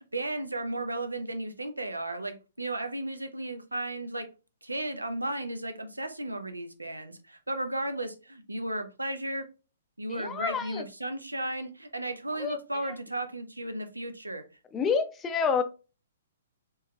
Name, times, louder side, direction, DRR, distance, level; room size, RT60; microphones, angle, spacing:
voice 1, 0.1-4.2 4.6-9.4 10.0-14.4, right 1 dB, 85° right, 0.6 m, -34 dB
voice 2, 10.1-10.9 12.4-12.6 14.7-15.6, left 6 dB, 15° left, 0.5 m, -28 dB
4.4 x 3.1 x 2.3 m
figure-of-eight pair, 120°, 0 cm